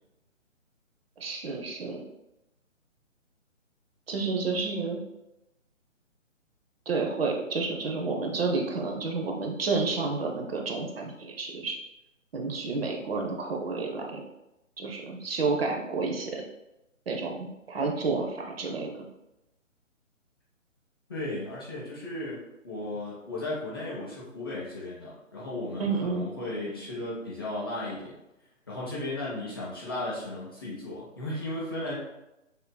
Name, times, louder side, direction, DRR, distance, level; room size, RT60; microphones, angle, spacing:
voice 1, 1.2-2.0 4.1-5.0 6.9-11.8 12.3-14.2 14.8-16.4 17.1-18.9 25.8-26.3, right 4 dB, 50° right, 1 dB, 0.7 m, -30 dB
voice 2, 21.1-28.1 28.7-31.9, left 1 dB, 20° left, -7 dB, 0.5 m, -35 dB
6.5 x 2.6 x 2.2 m, 0.91 s
figure-of-eight pair, 145°, 40 cm